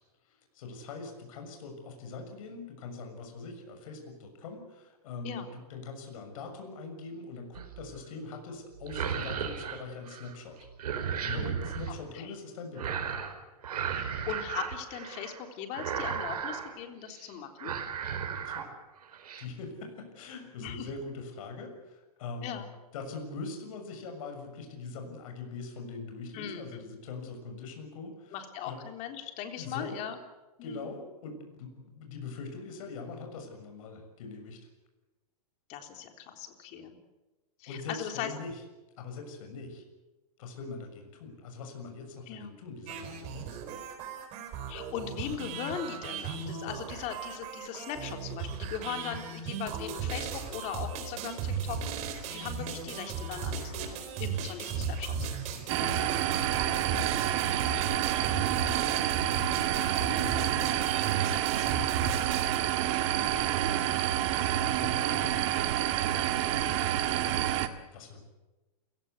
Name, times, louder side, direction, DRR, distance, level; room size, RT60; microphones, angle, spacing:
voice 1, 0.2-10.6 11.0-13.1 18.4-18.7 19.4-22.6 22.9-28.4 28.7-28.8 29.6-30.0 30.6-34.7 37.7-38.6 39.0-39.8 40.4-43.6 55.6-62.4 63.3-63.9 64.2-67.4 67.9-68.2, left 4 dB, 60° left, 5 dB, 6.7 m, -43 dB
sound 1, 7.5-8.0 8.8-10.4 10.6-11.9 12.8-13.4 13.6-15.4 15.7-16.7 17.1-17.3 17.6-18.7 19.0-19.4, right 7 dB, 85° right, 4.7 m, -35 dB
voice 2, 13.9-17.7 20.6-20.9 22.4-22.7 26.3-26.8 28.3-30.2 30.6-30.9 35.7-37.0 37.6-38.3 42.3-42.5 44.7-51.8 52.1-55.3 59.7-60.1 63.1-63.5, left 9 dB, 35° left, 5 dB, 3.7 m, -39 dB
sound 2, 42.9-62.6, right 6 dB, 35° right, 4.3 m, -36 dB
sound 3, 55.7-67.7, right 13 dB, 50° right, 1.9 m, -28 dB
30.0 x 17.0 x 8.2 m, 1.1 s
hypercardioid pair, 145°, 19 cm